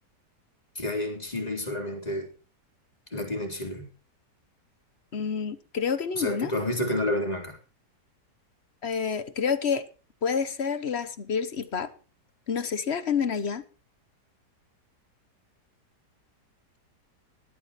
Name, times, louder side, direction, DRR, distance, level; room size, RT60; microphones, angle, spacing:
voice 1, 0.8-2.3 3.1-3.9 6.1-7.6, left 1 dB, 20° left, 1 dB, 3.8 m, -30 dB
voice 2, 5.1-6.5 8.8-9.8 10.2-11.9 12.5-13.6, left 6 dB, 45° left, 13 dB, 1.1 m, -28 dB
18.5 x 13.0 x 3.1 m, 0.35 s
omnidirectional pair, 1.8 m